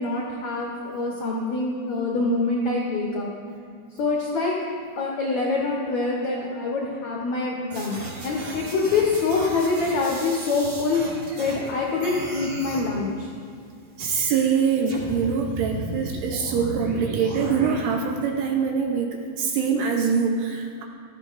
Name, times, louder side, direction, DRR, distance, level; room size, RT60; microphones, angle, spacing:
voice 1, 0.0-3.3 4.0-4.5 5.0-13.3, left 3 dB, 75° left, -3 dB, 1.7 m, -25 dB
sound 1, 7.7-11.7 12.0-12.9 14.0-14.4 14.9-17.8, right 1 dB, 40° right, 2.1 m, -35 dB
voice 2, 14.0-20.8, right 6 dB, 75° right, 2 dB, 2.5 m, -24 dB
16.5 x 13.5 x 2.6 m, 2.3 s
omnidirectional pair, 5.3 m